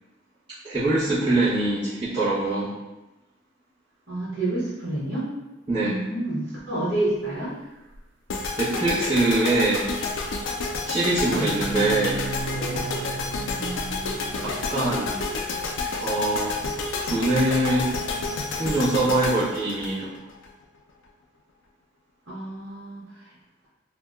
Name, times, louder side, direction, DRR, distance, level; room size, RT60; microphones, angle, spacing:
voice 1, 0.6-2.7 5.7-6.0 8.6-9.9 10.8-12.2 14.4-15.3 16.0-16.5 17.0-17.9 18.5-20.1, right 2 dB, 25° right, -16 dB, 1.0 m, -23 dB
voice 2, 4.1-5.3 5.8-7.5 11.3-11.6 13.5-15.0 22.3-23.2, right 1 dB, 55° right, -9 dB, 1.0 m, -30 dB
sound 1, 7.9-8.0 9.8-10.5 10.8-16.3 17.1-18.5, right 3 dB, 85° right, 0.3 m, -37 dB
sound 2, 8.3-20.5, left 3 dB, 80° left, 0.4 m, -30 dB
2.7 x 2.1 x 3.4 m, 1.0 s
head